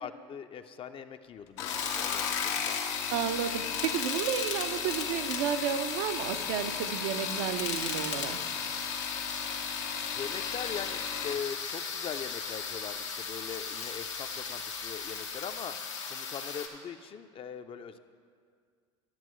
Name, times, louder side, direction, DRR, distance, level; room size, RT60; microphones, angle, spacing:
voice 1, 0.0-2.8 10.1-15.8 16.1-18.0, left 7 dB, 35° left, 9 dB, 0.5 m, -41 dB
sound 1, 1.5-11.4 12.6-13.1 13.5-14.0 14.2-14.3, left 8 dB, 70° left, 0.7 m, -37 dB
sound 2, 1.7-16.7, left 5 dB, 90° left, 1.1 m, -37 dB
voice 2, 3.1-8.4, right 9 dB, 70° right, 8 dB, 0.5 m, -32 dB
13.0 x 7.5 x 3.1 m, 2.1 s
hypercardioid pair, 80°, 15 cm